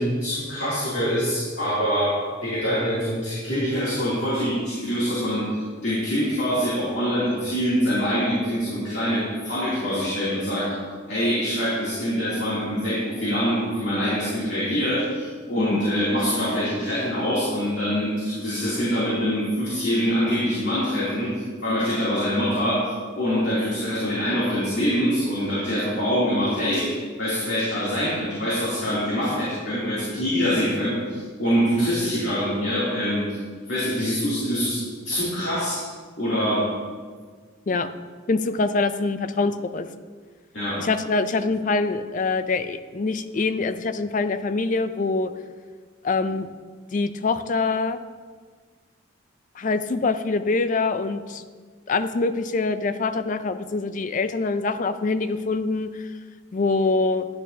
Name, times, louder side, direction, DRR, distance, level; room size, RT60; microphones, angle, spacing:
voice 1, 0.0-2.2 2.4-10.7 11.1-21.3 21.6-22.8 23.1-26.9 27.2-33.4 33.7-35.8 36.2-36.6 40.5-40.8, equal, 60° left, -10 dB, 2.7 m, -24 dB
voice 2, 38.3-39.9 40.8-45.3 46.0-46.5 46.9-48.0 49.6-51.4 51.9-56.1 56.5-57.3, left 3 dB, 40° left, 11 dB, 0.4 m, -24 dB
10.5 x 10.0 x 2.7 m, 1.5 s
head